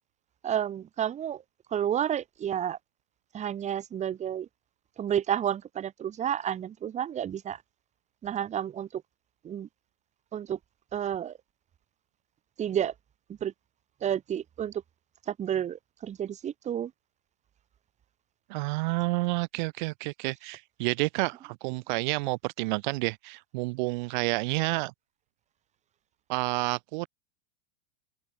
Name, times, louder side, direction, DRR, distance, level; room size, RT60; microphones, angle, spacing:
voice 1, 0.4-1.4 1.7-2.8 3.3-4.5 5.0-7.6 8.2-9.0 9.4-9.7 10.3-10.6 10.9-11.3 12.6-12.9 13.3-13.5 14.0-14.8 15.3-16.9, right 9 dB, 20° right, 1.7 m, -30 dB
voice 2, 18.5-24.9 26.3-27.1, right 25 dB, 40° right, 1.3 m, -29 dB
open air
figure-of-eight pair, 95°, 35 cm